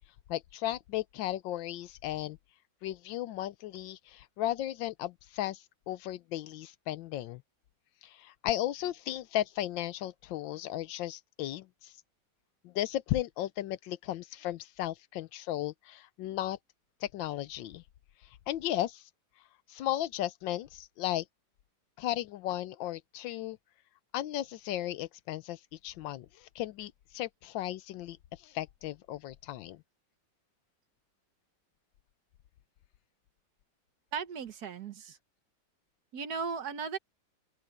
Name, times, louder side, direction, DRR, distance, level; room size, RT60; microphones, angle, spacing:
voice 1, 0.3-2.4 2.8-7.4 8.0-11.9 12.6-16.6 17.0-17.8 18.5-19.0 19.7-21.2 22.0-23.6 24.1-28.2 28.4-29.8, left 13 dB, 85° left, 1.4 m, -35 dB
voice 2, 34.1-35.2 36.1-37.0, right 5 dB, 60° right, 1.6 m, -36 dB
open air
omnidirectional pair, 2.0 m